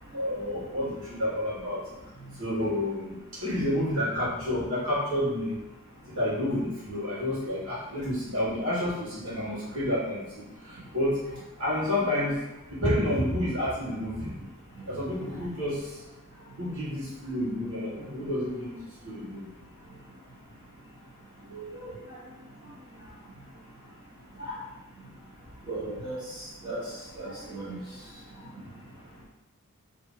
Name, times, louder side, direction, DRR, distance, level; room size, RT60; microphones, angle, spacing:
voice 1, 0.1-1.8 2.4-3.1 3.4-5.6 6.1-11.1 11.6-12.3 12.7-14.3 14.9-15.8 16.6-18.7 19.0-19.4, left 1 dB, 70° right, -10 dB, 1.5 m, -29 dB
voice 2, 21.5-21.9 24.4-24.6 25.7-26.2 26.6-26.8 27.1-27.8, right 2 dB, 20° right, -10 dB, 1.4 m, -36 dB
2.8 x 2.6 x 3.8 m, 0.99 s
head